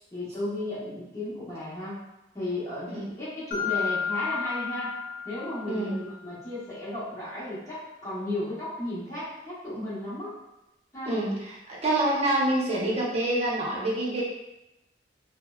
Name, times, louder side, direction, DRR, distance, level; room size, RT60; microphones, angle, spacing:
voice 1, 0.1-2.0 2.3-4.9 5.2-10.3 10.9-11.1, left 1 dB, 20° left, -11 dB, 0.9 m, -34 dB
Mallet percussion, 3.5-6.1, left 7 dB, 50° left, 0.8 m, -32 dB
voice 2, 5.7-6.1 11.1-11.6 11.8-14.2, right 1 dB, 35° right, -5 dB, 0.7 m, -26 dB
3.1 x 2.0 x 2.2 m, 0.92 s
head